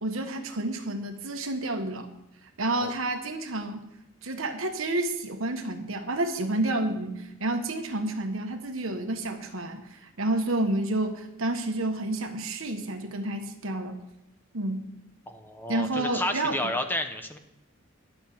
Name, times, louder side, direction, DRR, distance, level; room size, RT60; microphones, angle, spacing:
voice 1, 0.0-2.1 2.6-3.8 4.2-14.0 14.5-14.9 15.7-16.6, right 2 dB, 75° right, 5 dB, 1.4 m, -30 dB
voice 2, 15.3-17.4, left 1 dB, 10° left, 6 dB, 0.8 m, -31 dB
12.0 x 6.1 x 8.5 m, 0.87 s
head